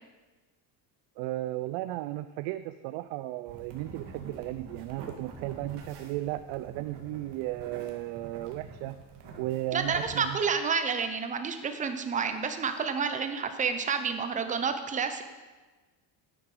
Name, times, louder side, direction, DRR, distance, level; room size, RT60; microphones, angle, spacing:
voice 1, 1.2-9.0 9.4-10.4, right 16 dB, 90° right, 12 dB, 0.6 m, -35 dB
sound 1, 3.5-10.3, right 4 dB, 60° right, 2.0 m, -47 dB
voice 2, 9.7-15.2, right 6 dB, 15° right, 8 dB, 0.6 m, -29 dB
11.0 x 9.6 x 4.9 m, 1.3 s
cardioid pair, 175°, 45 cm